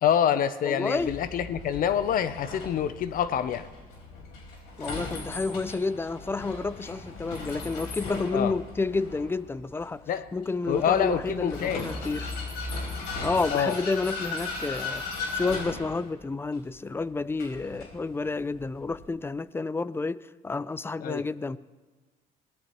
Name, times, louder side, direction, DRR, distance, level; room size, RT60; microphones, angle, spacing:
voice 1, 0.0-3.7 8.3-8.5 10.1-10.2 10.7-11.9 13.5-13.8 21.0-21.2, left 9 dB, 55° left, 0.6 m, -26 dB
voice 2, 0.6-1.2 4.8-10.0 10.3-12.3 13.2-15.0 15.3-21.6, left 3 dB, 15° left, 0.4 m, -30 dB
Vehicle, 1.0-19.0, left 3 dB, 85° left, 4.6 m, -38 dB
22.5 x 18.0 x 3.0 m
cardioid pair, 110°, 17 cm